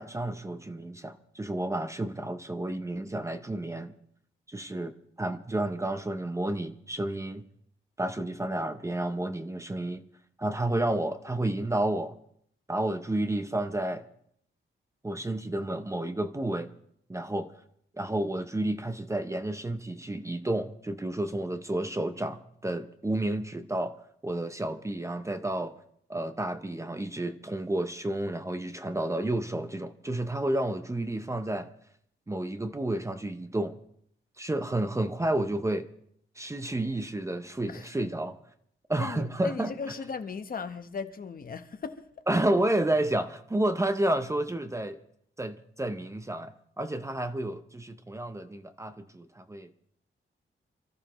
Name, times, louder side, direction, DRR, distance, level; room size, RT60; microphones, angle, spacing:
voice 1, 0.0-3.9 4.5-7.4 8.0-10.0 10.4-12.2 12.7-14.0 15.0-16.7 17.1-17.5 18.0-24.0 24.2-25.8 26.1-31.7 32.3-33.8 34.4-35.9 36.4-38.4 38.9-39.7 42.3-45.0 45.4-49.7, right 1 dB, 15° right, 0.6 m, -31 dB
voice 2, 39.0-42.0, left 5 dB, 45° left, 0.9 m, -37 dB
27.5 x 14.0 x 3.0 m
wide cardioid pair, 180°, 21 cm